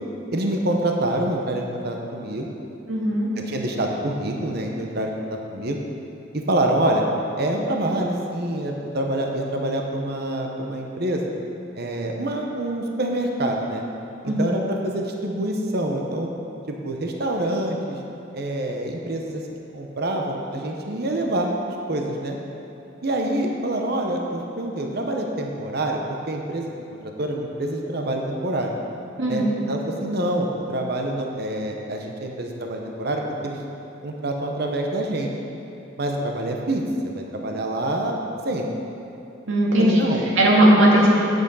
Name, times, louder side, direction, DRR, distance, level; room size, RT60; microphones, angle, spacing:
voice 1, 0.3-2.5 3.4-5.8 6.3-7.0 7.4-11.3 11.8-13.8 14.2-16.3 16.7-18.0 18.3-19.4 19.7-22.4 23.0-26.7 27.2-28.7 29.3-33.6 34.0-35.3 36.0-38.2 38.4-38.7 39.8-40.2, right 1 dB, 50° right, 1 dB, 0.9 m, -26 dB
voice 2, 2.9-3.3 14.2-14.5 29.2-29.5 39.5-41.1, right 1 dB, 85° right, -4 dB, 2.1 m, -18 dB
9.0 x 7.9 x 5.5 m, 2.8 s
head